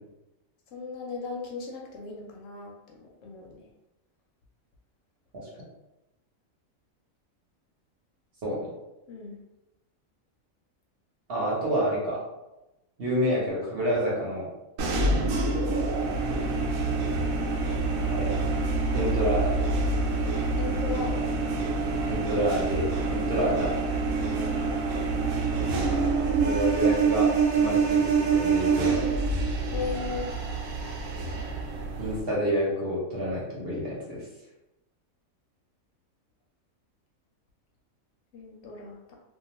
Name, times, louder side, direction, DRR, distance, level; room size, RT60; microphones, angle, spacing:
voice 1, 0.7-3.5 9.1-9.4 14.9-15.2 20.6-21.2 23.4-23.5 24.1-24.8 29.7-30.3 38.3-39.1, left 4 dB, 70° left, 0 dB, 0.9 m, -37 dB
voice 2, 11.3-12.2 13.0-14.5 18.1-18.4 18.9-19.6 22.0-22.8 23.1-23.7 26.4-29.1 32.0-34.2, equal, 50° right, -5 dB, 0.9 m, -28 dB
sound 1, 14.8-32.2, right 4 dB, 85° right, 1.0 m, -26 dB
2.4 x 2.3 x 2.9 m, 0.95 s
omnidirectional pair, 1.4 m